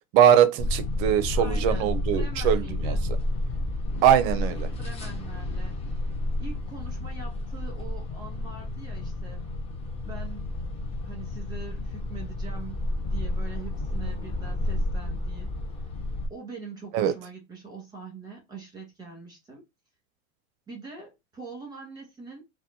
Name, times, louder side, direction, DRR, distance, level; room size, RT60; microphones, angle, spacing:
voice 1, 0.1-3.0 4.0-4.7 16.9-17.1, right 9 dB, 45° right, 0.5 m, -21 dB
sound 1, 0.6-16.3, left 1 dB, 15° left, 0.5 m, -30 dB
voice 2, 1.3-3.1 4.8-5.7 6.4-9.4 10.0-10.4 11.0-12.8 13.1-15.5 16.3-19.6 20.7-22.4, right 4 dB, 10° right, 1.4 m, -43 dB
4.2 x 2.1 x 2.6 m
supercardioid pair, 140°, 40 cm